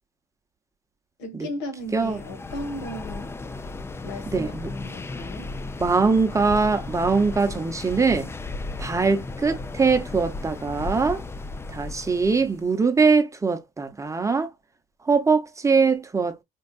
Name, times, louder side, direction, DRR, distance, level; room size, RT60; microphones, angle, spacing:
voice 1, 1.2-3.4 4.0-5.5, left 1 dB, 85° left, 1.4 m, -35 dB
sound 1, 1.9-12.7, left 3 dB, 15° left, 0.3 m, -35 dB
voice 2, 4.3-4.7 5.8-8.3 8.8-11.2 11.7-14.5 15.0-16.4, right 4 dB, 20° right, 0.8 m, -22 dB
4.4 x 2.4 x 2.3 m
cardioid pair, 110°, 17 cm